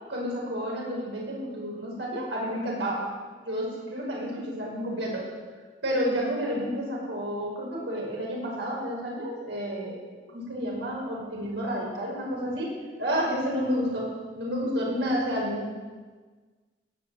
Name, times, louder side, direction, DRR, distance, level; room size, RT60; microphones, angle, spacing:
voice 1, 0.1-3.1 3.4-5.3 5.8-10.0 10.3-12.7 13.0-15.7, equal, 90° right, -3 dB, 5.4 m, -30 dB
17.5 x 8.6 x 7.8 m, 1.4 s
head